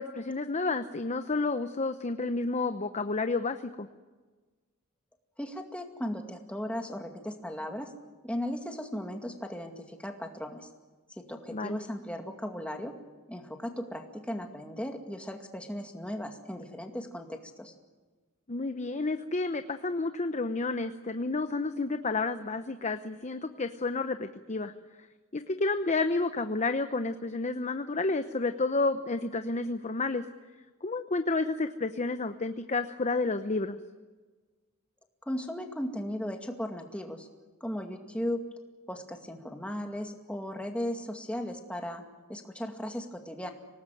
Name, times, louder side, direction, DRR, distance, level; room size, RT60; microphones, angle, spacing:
voice 1, 0.0-3.9 11.5-11.8 18.5-24.7 25.3-30.2 30.8-33.8, left 3 dB, 30° left, 9 dB, 0.8 m, -30 dB
voice 2, 5.4-7.9 8.2-10.7 11.1-12.9 13.3-17.7 35.2-37.3 37.6-38.4 38.9-42.0 42.3-43.5, equal, 5° left, 4 dB, 2.2 m, -36 dB
25.0 x 18.5 x 9.3 m, 1.3 s
head